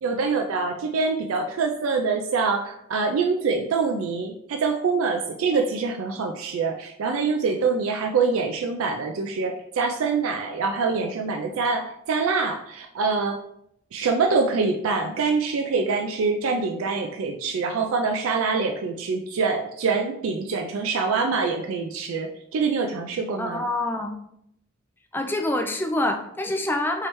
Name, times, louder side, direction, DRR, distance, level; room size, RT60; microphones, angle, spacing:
voice 1, 0.0-13.4 13.9-23.6, right 4 dB, 85° right, 4 dB, 0.4 m, -25 dB
voice 2, 23.4-24.1 25.1-27.1, left 1 dB, 10° left, 4 dB, 0.3 m, -26 dB
4.6 x 3.2 x 2.9 m, 0.75 s
head